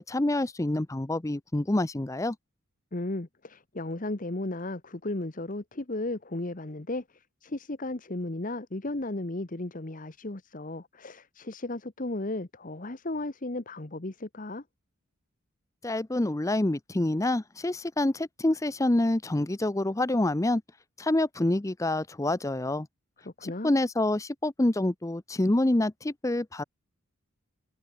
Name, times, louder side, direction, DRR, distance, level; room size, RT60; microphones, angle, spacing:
voice 1, 0.1-2.4 15.8-20.6 21.0-22.9 23.6-26.6, left 1 dB, 15° left, 0.5 m, -27 dB
voice 2, 2.9-14.6 23.2-23.7, left 2 dB, 35° left, 1.2 m, -35 dB
head